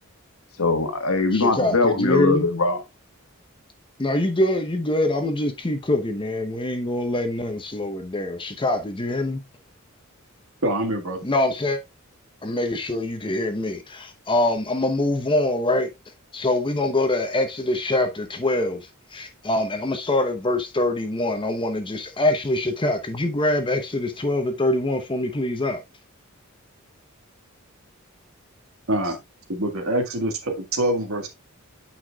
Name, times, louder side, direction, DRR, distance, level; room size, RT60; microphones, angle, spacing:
voice 1, 0.6-2.8, left 3 dB, 90° left, 1.5 m, -21 dB
voice 2, 1.3-2.4 4.0-9.4 11.2-11.8 12.4-15.9 16.3-25.8, left 1 dB, 25° left, 0.8 m, -24 dB
voice 3, 10.6-11.2 28.9-29.2 29.5-31.3, right 1 dB, 75° right, 1.8 m, -25 dB
9.1 x 5.8 x 2.3 m
head